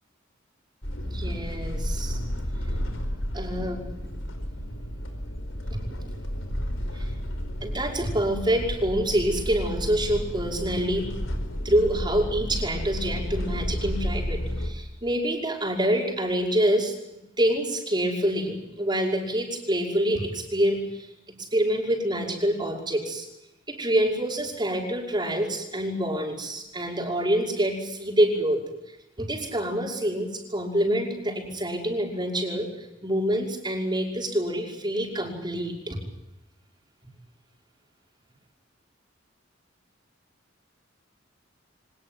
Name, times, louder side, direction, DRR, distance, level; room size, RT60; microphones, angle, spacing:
sound 1, 0.8-14.7, equal, 80° left, 4.8 m, -32 dB
voice 1, 1.1-2.2 3.3-3.8 6.9-7.1 7.6-11.1 11.6-16.9 17.4-21.1 21.4-23.3 23.7-28.6 29.2-36.0, right 1 dB, 25° right, 1 dB, 5.7 m, -26 dB
25.0 x 19.5 x 9.4 m, 0.90 s
head